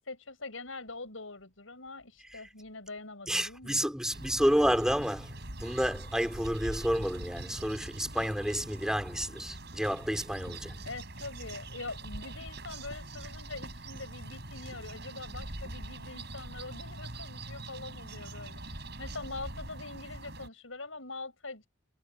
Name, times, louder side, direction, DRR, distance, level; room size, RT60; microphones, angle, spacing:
voice 1, 0.0-3.8 10.8-21.7, left 3 dB, 85° left, 6.3 m, -43 dB
voice 2, 3.3-5.3 5.6-10.7, equal, 5° right, 4.8 m, -30 dB
sound 1, 4.1-20.5, right 2 dB, 55° right, 6.8 m, -43 dB
head